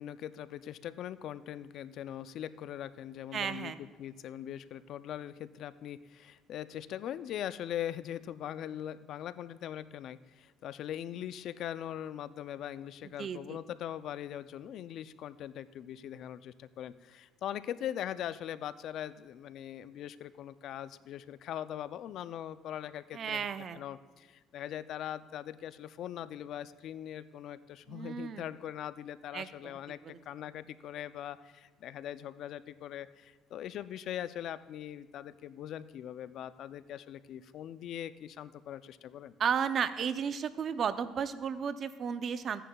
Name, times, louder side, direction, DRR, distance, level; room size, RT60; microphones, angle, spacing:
voice 1, 0.0-23.5 23.7-39.3, left 11 dB, 65° left, 14 dB, 0.4 m, -41 dB
voice 2, 3.3-3.8 13.2-13.6 23.1-23.8 27.9-28.4 29.3-29.8 30.0-30.2 39.4-42.6, right 7 dB, 45° right, 12 dB, 0.5 m, -34 dB
15.0 x 10.0 x 2.3 m, 1.3 s
cardioid pair, 110°, 0 cm